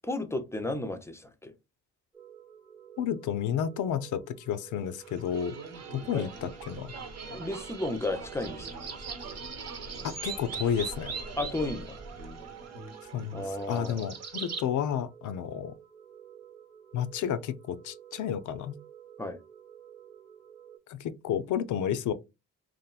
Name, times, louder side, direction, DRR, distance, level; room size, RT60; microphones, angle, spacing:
voice 1, 0.1-1.5 6.1-6.3 7.3-8.8 11.4-12.0 13.3-14.1 19.2-19.4, left 2 dB, 10° left, 0.5 m, -33 dB
sound 1, 2.1-20.8, right 9 dB, 10° right, 0.9 m, -52 dB
voice 2, 3.0-5.5 5.9-6.9 10.0-11.1 13.1-15.8 16.9-18.8 20.9-22.1, left 9 dB, 65° left, 0.4 m, -31 dB
sound 2, 5.0-14.7, right 4 dB, 50° right, 0.9 m, -41 dB
2.9 x 2.5 x 2.2 m
supercardioid pair, 55°, 33 cm